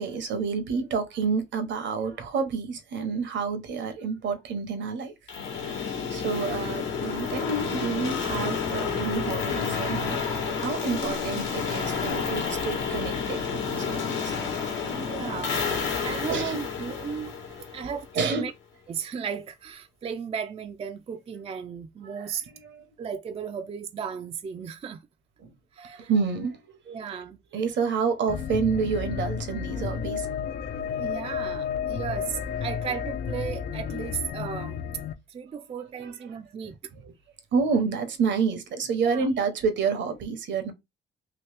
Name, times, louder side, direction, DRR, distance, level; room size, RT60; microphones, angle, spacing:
voice 1, 0.0-5.1 5.6-14.3 16.3-16.6 18.1-18.5 22.0-22.3 22.6-22.8 25.4-25.5 25.8-26.7 27.5-30.3 36.0-36.1 36.6-37.1 37.5-40.7, right 5 dB, 70° right, 0.9 m, -29 dB
sound 1, 5.3-18.2, left 5 dB, 70° left, 1.1 m, -30 dB
voice 2, 14.8-17.3 17.7-18.5 18.9-22.5 23.0-25.0 25.7-26.1 26.9-27.4 31.0-34.8 35.3-36.7 39.0-39.3, right 7 dB, 30° right, 0.4 m, -35 dB
sound 2, 28.3-35.1, left 7 dB, 55° left, 0.4 m, -32 dB
3.0 x 2.8 x 3.2 m
cardioid pair, 90°, 20 cm